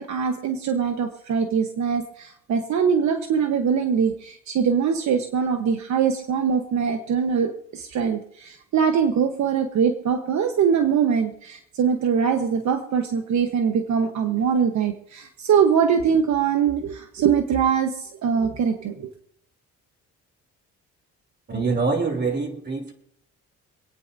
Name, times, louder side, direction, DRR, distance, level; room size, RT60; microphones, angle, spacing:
voice 1, 0.0-19.1, right 7 dB, 65° right, 5 dB, 1.2 m, -22 dB
voice 2, 21.5-22.9, right 4 dB, 35° right, 3 dB, 3.2 m, -25 dB
27.0 x 9.2 x 2.7 m, 0.70 s
cardioid pair, 90°, 30 cm